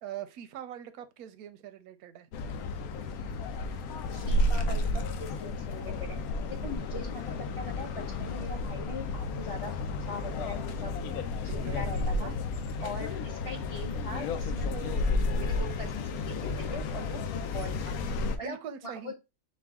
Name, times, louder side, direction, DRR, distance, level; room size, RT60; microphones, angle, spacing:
voice 1, 0.0-2.3 10.7-11.0 11.5-12.3 18.4-19.1, right 10 dB, 90° right, 1.1 m, -43 dB
sound 1, 2.3-18.4, left 2 dB, 85° left, 1.1 m, -32 dB
voice 2, 4.1-6.2 6.5-10.9 11.4-12.3 12.8-15.0 15.3-18.0 18.4-19.1, left 1 dB, 25° left, 0.9 m, -41 dB
5.3 x 2.3 x 3.5 m
omnidirectional pair, 1.5 m